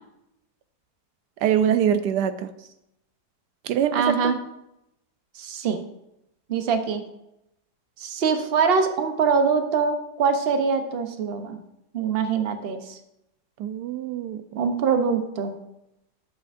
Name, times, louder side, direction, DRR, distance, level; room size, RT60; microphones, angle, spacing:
voice 1, 1.4-2.5 3.6-4.3 13.6-14.6, right 9 dB, 80° right, 11 dB, 1.2 m, -24 dB
voice 2, 3.9-4.4 5.3-5.8 6.5-7.0 8.0-11.6 11.9-13.0 14.6-15.6, right 5 dB, 50° right, 7 dB, 0.8 m, -23 dB
12.0 x 7.5 x 2.6 m, 0.85 s
omnidirectional pair, 1.8 m